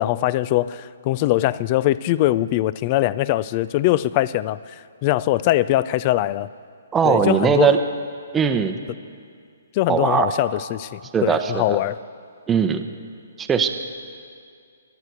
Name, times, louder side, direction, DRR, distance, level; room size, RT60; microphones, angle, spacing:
voice 1, 0.0-4.6 5.0-6.5 7.0-7.7 9.7-12.0, left 15 dB, 35° left, 19 dB, 0.4 m, -21 dB
voice 2, 6.9-7.8 8.3-8.8 9.9-10.3 11.1-11.8 12.5-12.8 13.4-13.7, right 7 dB, 15° right, 5 dB, 0.8 m, -19 dB
22.5 x 8.2 x 7.9 m, 2.2 s
hypercardioid pair, 135°, 0 cm